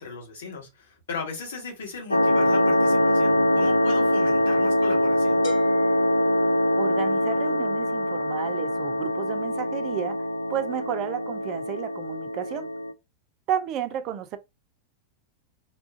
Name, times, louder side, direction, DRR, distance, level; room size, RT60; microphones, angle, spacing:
voice 1, 0.0-5.4, left 4 dB, 65° left, 1.3 m, -36 dB
sound 1, 2.1-12.9, left 1 dB, 85° left, 0.3 m, -23 dB
sound 2, 5.4-7.3, left 3 dB, 45° left, 1.0 m, -44 dB
voice 2, 6.8-12.7 13.5-14.4, right 10 dB, 40° right, 0.4 m, -32 dB
3.6 x 2.4 x 2.4 m
figure-of-eight pair, 90°, 0 cm